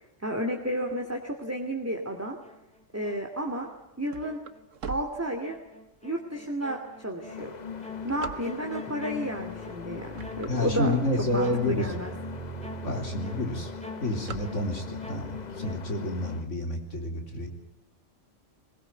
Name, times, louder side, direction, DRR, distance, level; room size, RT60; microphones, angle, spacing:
voice 1, 0.2-2.4 2.9-3.7 4.0-4.4 4.9-5.6 6.0-7.5 8.0-10.9 11.3-12.1, right 1 dB, 10° right, 1 dB, 2.5 m, -32 dB
sound 1, 2.4-3.8 4.2-15.8, right 1 dB, 5° left, 3.0 m, -44 dB
sound 2, 3.6-5.9 6.5-6.6 7.2-8.9 9.6-9.8 10.1-11.6 12.1-12.2 12.4-12.5 12.8-13.2 13.4-15.1, right 6 dB, 80° right, 1.6 m, -42 dB
sound 3, 7.2-16.5, left 7 dB, 40° left, 1.0 m, -41 dB
voice 2, 10.5-11.9 12.8-13.7 14.0-17.5, left 1 dB, 75° left, 3 dB, 4.3 m, -29 dB
21.5 x 21.0 x 9.3 m, 0.92 s
omnidirectional pair, 1.3 m